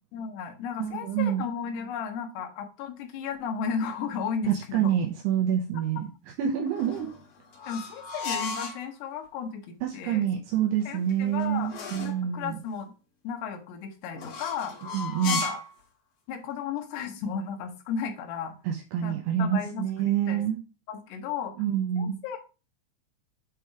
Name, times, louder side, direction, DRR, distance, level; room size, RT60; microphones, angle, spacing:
voice 1, 0.1-5.0 7.7-10.3 10.9-11.7 12.0-12.9 13.2-14.8 15.3-15.6 16.3-18.6 19.0-20.4 20.9-21.6 22.0-22.4, left 6 dB, 70° left, 4 dB, 2.8 m, -34 dB
voice 2, 0.8-1.5 4.5-6.1 6.4-7.1 9.8-12.6 14.9-15.4 18.7-20.6 21.6-22.2, right 9 dB, 80° right, 2 dB, 2.4 m, -27 dB
sound 1, 6.7-8.8 10.8-12.2 14.1-15.7, left 4 dB, 55° left, 2.4 m, -35 dB
8.0 x 3.3 x 4.7 m, 0.32 s
omnidirectional pair, 5.6 m